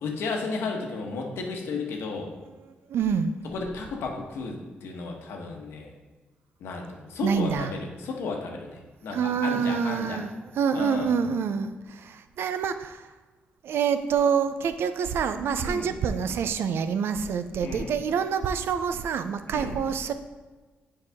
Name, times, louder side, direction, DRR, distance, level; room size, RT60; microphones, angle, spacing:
voice 1, 0.0-2.3 3.4-5.9 6.6-10.2 10.7-11.1 15.6-15.9 17.6-17.9 19.5-19.8, left 4 dB, 85° left, 1 dB, 1.1 m, -33 dB
voice 2, 2.7-3.4 7.2-7.8 9.1-13.1 13.6-20.1, right 6 dB, 75° right, 10 dB, 0.5 m, -27 dB
7.4 x 4.8 x 3.5 m, 1.3 s
cardioid pair, 70°, 4 cm